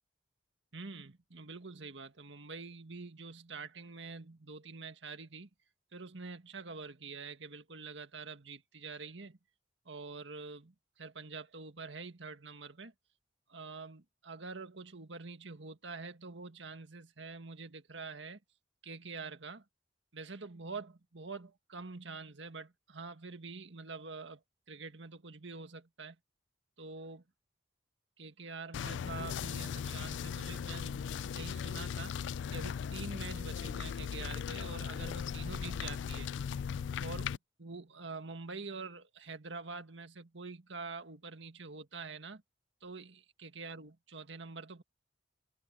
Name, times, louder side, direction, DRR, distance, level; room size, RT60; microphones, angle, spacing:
voice 1, 0.7-5.5 5.9-9.4 9.9-12.9 13.5-18.4 18.8-19.6 20.1-24.4 24.7-26.2 26.8-27.2 28.2-32.2 32.5-36.3 37.0-42.4 42.8-44.8, right 4 dB, 85° right, 1.8 m, -46 dB
sound 1, 28.7-37.4, left 7 dB, 80° left, 0.3 m, -38 dB
open air
head